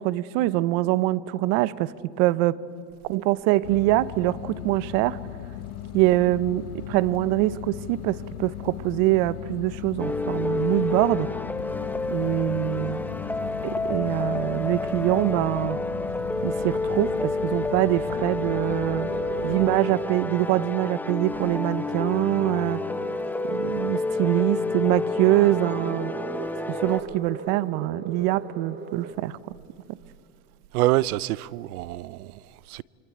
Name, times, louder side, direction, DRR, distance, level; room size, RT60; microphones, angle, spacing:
voice 1, 0.0-2.6 3.0-5.2 5.9-11.3 12.1-13.0 13.6-15.8 16.4-19.1 19.4-22.8 23.5-26.1 26.7-29.4 29.9-30.0, right 17 dB, 65° right, 1.0 m, -24 dB
sound 1, 3.6-19.8, left 13 dB, 85° left, 1.2 m, -38 dB
sound 2, 10.0-27.0, left 2 dB, 5° left, 0.8 m, -29 dB
sound 3, 11.9-29.2, right 4 dB, 25° right, 3.4 m, -40 dB
voice 2, 30.7-32.8, right 17 dB, 90° right, 0.7 m, -26 dB
26.0 x 25.0 x 8.7 m
supercardioid pair, 115°, 43 cm